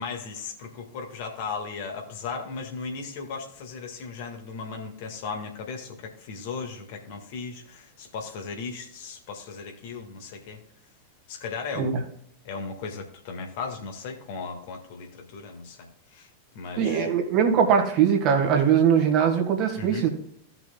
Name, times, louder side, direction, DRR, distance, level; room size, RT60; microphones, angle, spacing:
voice 1, 0.0-10.6 11.3-11.9 12.4-16.3 16.6-17.1 19.8-20.1, left 5 dB, 50° left, 3 dB, 1.8 m, -36 dB
voice 2, 16.8-20.1, right 7 dB, 40° right, 3 dB, 2.0 m, -21 dB
16.0 x 6.0 x 2.3 m, 0.70 s
figure-of-eight pair, 90°, 0 cm